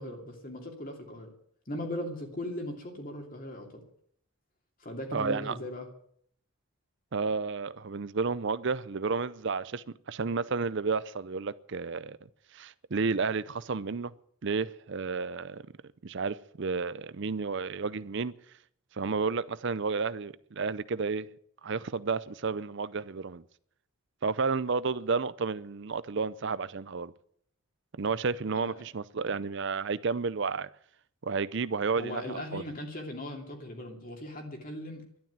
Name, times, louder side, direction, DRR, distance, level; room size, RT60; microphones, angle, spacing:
voice 1, 0.0-1.3 1.7-3.8 4.8-5.9 28.6-28.8 32.0-35.3, left 1 dB, 40° left, 2.8 m, -39 dB
voice 2, 5.1-5.6 7.1-12.2 12.5-14.1 14.4-15.6 16.0-18.3 19.0-21.3 21.6-23.4 24.2-27.1 27.9-30.7 31.2-32.6, right 4 dB, 55° right, 0.6 m, -31 dB
12.0 x 10.5 x 9.4 m
head